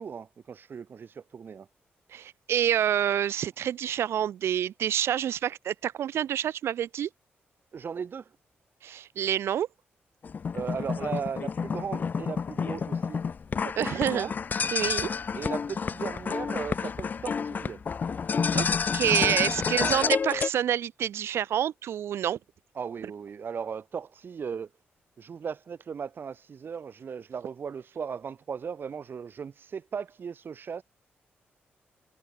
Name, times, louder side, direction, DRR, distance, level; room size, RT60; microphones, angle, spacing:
voice 1, 0.0-1.7 7.7-8.3 10.5-13.2 13.6-14.3 15.3-17.8 19.7-20.1 22.7-24.7 25.2-30.8, right 6 dB, 55° right, 1.1 m, -37 dB
voice 2, 2.1-7.1 8.8-9.7 13.8-14.3 14.7-15.1 18.5-18.7 18.9-22.4, right 10 dB, 75° right, 0.4 m, -27 dB
sound 1, 10.2-20.5, left 6 dB, 45° left, 0.4 m, -29 dB
cardioid pair, 75°, 4 cm